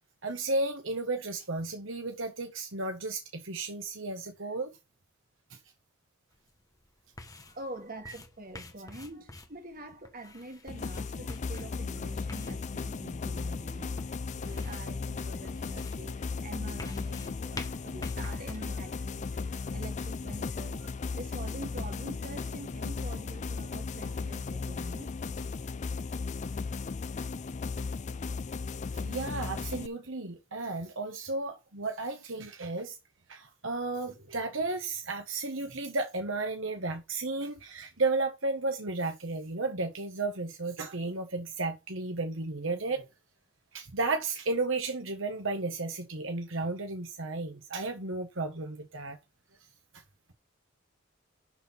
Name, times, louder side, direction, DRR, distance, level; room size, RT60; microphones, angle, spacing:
voice 1, 0.2-4.8 5.5-5.6 28.9-33.0 33.3-43.1 43.7-49.2 49.9-50.0, right 3 dB, 70° right, 1.5 m, -33 dB
sound 1, 6.3-18.6, left 2 dB, 20° left, 1.5 m, -50 dB
voice 2, 7.4-25.2, right 1 dB, 45° right, 2.3 m, -45 dB
sound 2, 10.7-29.9, left 4 dB, 35° left, 0.4 m, -36 dB
11.5 x 4.5 x 5.7 m
head